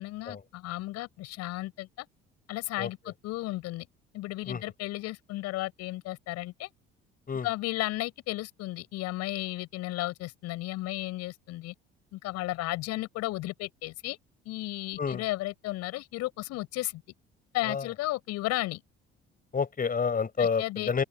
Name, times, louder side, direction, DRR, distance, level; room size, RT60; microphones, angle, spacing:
voice 1, 0.0-2.1 2.5-3.9 4.1-6.7 7.4-11.7 12.1-14.2 14.5-17.0 17.5-18.8 20.4-20.9, left 18 dB, 55° left, 7.2 m, -34 dB
voice 2, 19.5-21.0, left 6 dB, 30° left, 5.7 m, -29 dB
open air
figure-of-eight pair, 55°, 30 cm